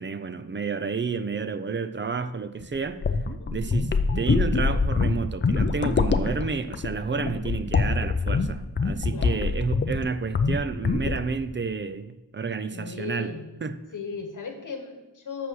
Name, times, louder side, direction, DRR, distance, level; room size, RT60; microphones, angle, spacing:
voice 1, 0.0-3.0 3.5-13.3 13.6-13.8, right 5 dB, 30° right, 11 dB, 0.4 m, -30 dB
sound 1, 2.6-10.1 10.3-10.6 10.9-11.3, left 4 dB, 30° left, 0.5 m, -24 dB
voice 2, 3.4-3.7 9.1-9.4 12.7-13.5 13.9-15.5, left 4 dB, 55° left, 6 dB, 1.3 m, -37 dB
8.2 x 6.2 x 6.2 m, 1.0 s
wide cardioid pair, 160°, 38 cm